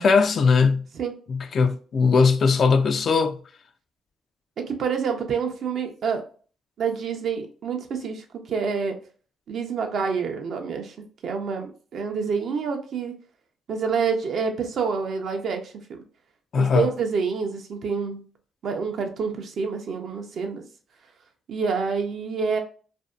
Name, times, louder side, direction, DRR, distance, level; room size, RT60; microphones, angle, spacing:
voice 1, 0.0-0.8 1.3-3.4 16.5-16.9, left 5 dB, 50° left, 0.3 m, -19 dB
voice 2, 4.6-6.2 6.8-9.0 9.5-13.1 13.7-16.0 16.6-18.2 18.6-20.6 21.5-22.6, right 5 dB, 65° right, 0.5 m, -27 dB
2.5 x 2.1 x 2.3 m
cardioid pair, 90°, 0 cm